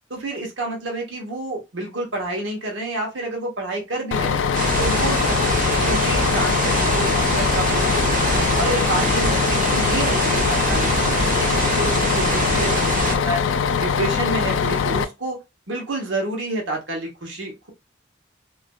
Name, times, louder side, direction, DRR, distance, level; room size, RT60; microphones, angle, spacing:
voice 1, 0.1-4.4 4.8-5.4 5.8-8.1 8.6-13.4 13.8-15.4 15.7-17.7, right 2 dB, 75° right, 1 dB, 1.0 m, -29 dB
Bus, 4.1-15.0, left 6 dB, 80° left, 0.3 m, -22 dB
sound 1, 4.5-13.1, right 2 dB, 45° right, 0.8 m, -24 dB
3.1 x 2.5 x 2.3 m, 0.24 s
head